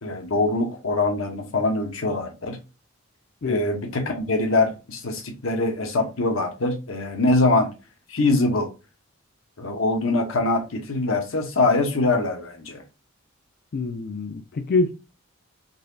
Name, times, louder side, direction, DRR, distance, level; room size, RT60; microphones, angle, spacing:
voice 1, 0.0-2.6 3.4-7.7 8.1-8.7 9.6-12.8, left 2 dB, 75° left, 0.9 m, -23 dB
voice 2, 13.7-14.9, left 3 dB, 50° left, 0.4 m, -25 dB
4.0 x 2.8 x 2.6 m
head